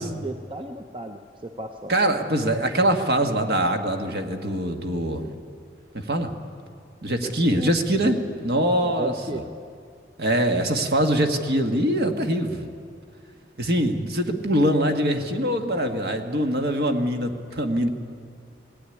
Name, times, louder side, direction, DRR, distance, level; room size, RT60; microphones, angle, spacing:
voice 1, 0.0-1.9 7.2-7.7 8.8-9.4, right 1 dB, 25° right, 5 dB, 0.7 m, -34 dB
voice 2, 1.9-5.3 5.9-6.3 7.0-9.4 10.2-12.7 13.6-17.9, right 1 dB, 55° right, 5 dB, 1.6 m, -23 dB
19.5 x 15.5 x 9.9 m, 2.2 s
head